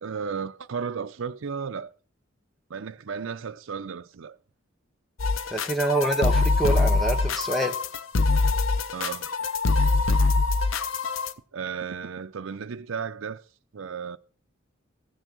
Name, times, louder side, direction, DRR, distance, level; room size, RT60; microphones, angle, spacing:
voice 1, 0.0-1.9 2.7-4.4 8.9-9.3 10.3-10.4 11.5-13.4 13.7-14.2, right 6 dB, 85° right, 0.6 m, -34 dB
sound 1, 5.2-11.3, left 3 dB, 80° left, 0.7 m, -23 dB
voice 2, 5.5-7.7, right 2 dB, ahead, 0.9 m, -26 dB
14.5 x 6.4 x 6.2 m
head